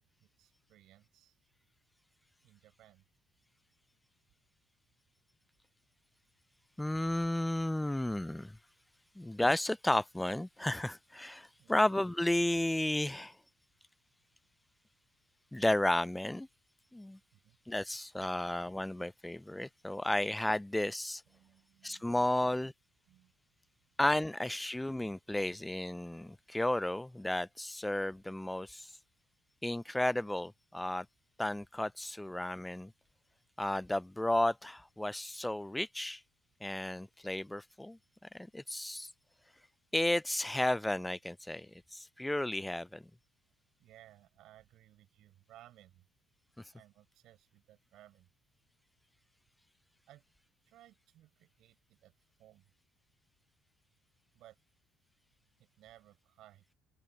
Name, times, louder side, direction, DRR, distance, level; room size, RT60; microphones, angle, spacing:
voice 1, 0.0-1.4 2.4-3.0 11.6-11.8 17.3-17.6 21.3-22.4 23.1-23.3 43.8-46.1 46.7-48.3 50.0-50.2 50.7-52.1 52.4-52.7 54.3-54.6 55.6-56.7, right 14 dB, 70° right, 7.7 m, -61 dB
voice 2, 6.8-8.6 9.2-13.4 15.5-16.5 16.9-17.2 17.7-21.2 21.8-22.7 24.0-28.9 29.6-31.1 31.4-32.9 33.6-36.2 36.6-38.0 38.3-39.1 39.9-43.1, left 1 dB, 5° left, 0.3 m, -33 dB
open air
supercardioid pair, 90°, 0 cm